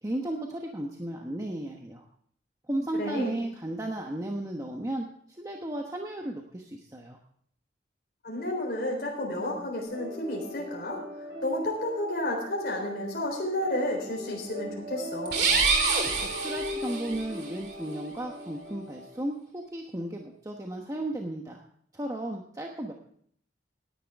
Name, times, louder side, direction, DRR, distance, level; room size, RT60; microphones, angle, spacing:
voice 1, 0.0-2.1 2.7-5.1 5.4-7.2 16.2-21.6 21.9-22.9, right 1 dB, 20° right, 1 dB, 1.1 m, -34 dB
voice 2, 3.0-3.3 8.2-15.4, left 1 dB, 55° left, -1 dB, 3.8 m, -31 dB
sound 1, 9.8-19.2, left 1 dB, 90° right, 4.8 m, -40 dB
sound 2, 15.2-17.2, right 4 dB, 65° right, 2.8 m, -26 dB
17.5 x 10.5 x 3.5 m, 0.63 s
head